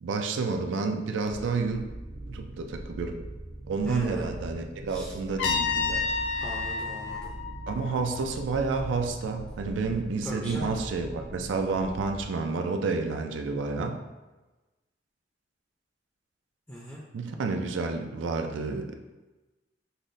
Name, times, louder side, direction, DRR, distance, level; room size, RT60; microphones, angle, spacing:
voice 1, 0.0-1.8 2.3-3.2 3.7-6.0 7.7-14.0 17.1-19.0, right 4 dB, 85° right, 5 dB, 0.4 m, -30 dB
sound 1, 1.3-12.2, right 1 dB, 60° right, 0.8 m, -41 dB
voice 2, 3.8-4.3 4.9-5.2 6.4-7.3 10.2-10.7 16.7-17.0, equal, 10° left, -5 dB, 0.4 m, -39 dB
Trumpet, 5.4-8.3, left 5 dB, 75° left, 0.5 m, -30 dB
5.4 x 2.0 x 2.5 m, 1.1 s
head